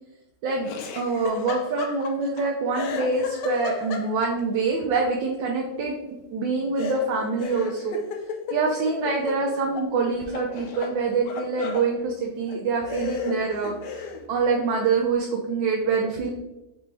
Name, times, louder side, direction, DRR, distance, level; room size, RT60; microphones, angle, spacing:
voice 1, 0.4-5.9 6.3-8.0 8.5-16.3, right 4 dB, 90° right, 0 dB, 1.4 m, -25 dB
Laughter, 0.6-2.4 2.7-4.4 6.8-9.9 10.2-11.9 12.5-12.6 12.9-14.2, left 5 dB, 75° left, 1.2 m, -34 dB
4.6 x 3.0 x 3.3 m, 0.96 s
omnidirectional pair, 1.9 m